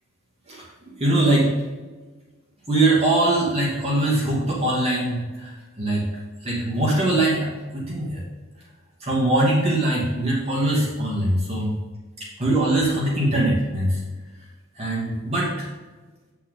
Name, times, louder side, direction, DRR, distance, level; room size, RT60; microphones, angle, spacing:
voice 1, 1.0-1.5 2.7-6.0 6.4-7.5 7.7-8.2 9.0-11.7 12.2-14.0 14.8-15.7, right 1 dB, 30° right, -6 dB, 2.5 m, -22 dB
8.7 x 8.5 x 3.9 m, 1.3 s
head